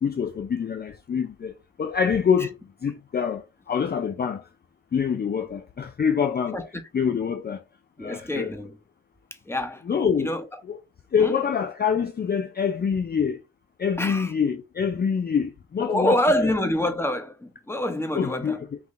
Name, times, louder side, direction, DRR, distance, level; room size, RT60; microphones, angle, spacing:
voice 1, 0.0-4.5 4.9-6.6 6.9-7.6 8.0-8.5 9.8-10.3 10.6-10.8 11.1-13.4 13.8-16.5 18.1-18.8, left 7 dB, 35° left, 0.5 m, -26 dB
voice 2, 8.0-8.7 9.5-10.4 11.2-11.3 14.0-14.3 15.8-18.6, left 1 dB, 10° left, 1.1 m, -26 dB
3.9 x 2.9 x 3.7 m
supercardioid pair, 60°, 29 cm